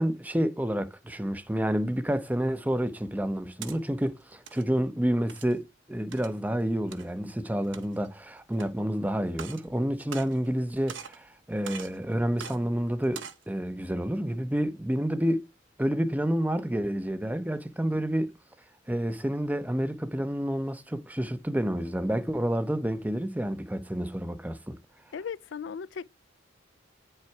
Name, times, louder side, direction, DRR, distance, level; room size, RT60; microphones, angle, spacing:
voice 1, 0.0-15.5 15.8-18.3 18.9-24.8, equal, 10° right, 0.6 m, -29 dB
sound 1, 3.6-3.8 4.3-4.6 5.3-5.6 6.1-6.4 6.9-7.0 7.6-8.1 8.6-8.7 9.3-9.7 10.0-10.6 10.9-11.2 11.6-12.0 12.4-12.6 13.0-13.4, right 7 dB, 70° right, 1.2 m, -42 dB
voice 2, 25.1-26.0, left 6 dB, 65° left, 0.4 m, -36 dB
9.4 x 5.6 x 4.5 m
head